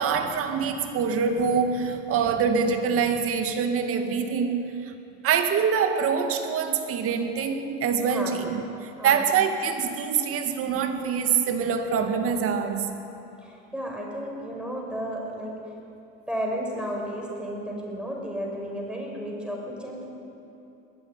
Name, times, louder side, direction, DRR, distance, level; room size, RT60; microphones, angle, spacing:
voice 1, 0.0-4.9 5.2-13.0, right 6 dB, 50° right, 5 dB, 2.2 m, -25 dB
voice 2, 13.7-15.5 16.3-20.1, equal, 5° right, -1 dB, 5.8 m, -32 dB
21.5 x 12.5 x 9.6 m, 2.8 s
supercardioid pair, 110°, 30 cm